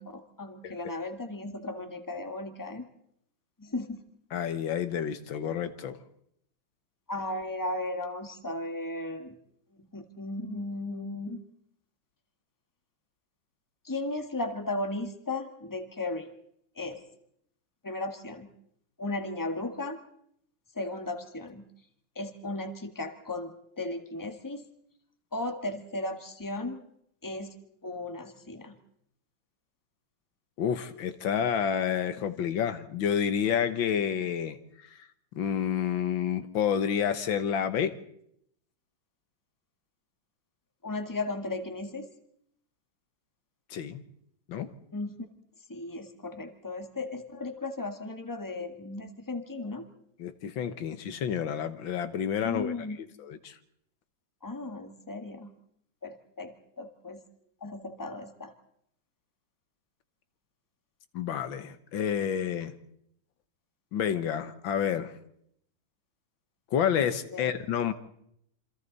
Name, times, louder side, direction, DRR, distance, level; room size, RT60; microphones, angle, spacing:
voice 1, 0.0-2.9 3.6-4.0 7.1-9.3 9.9-11.4 13.8-16.3 16.7-17.0 17.8-18.5 19.0-20.0 20.7-21.6 22.1-24.6 25.3-26.8 27.2-27.5 27.8-28.7 40.8-42.1 44.9-45.3 45.7-49.8 52.4-53.0 54.4-55.5 56.0-57.2 57.6-58.5 67.3-67.5, left 2 dB, 10° left, 6 dB, 1.7 m, -36 dB
voice 2, 4.3-6.0 30.6-34.6 35.4-38.0 43.7-44.0 44.5-44.7 50.2-52.7 53.2-53.6 61.1-62.8 63.9-65.1 66.7-67.9, left 8 dB, 80° left, 11 dB, 1.9 m, -29 dB
27.5 x 26.0 x 4.1 m, 0.73 s
omnidirectional pair, 2.1 m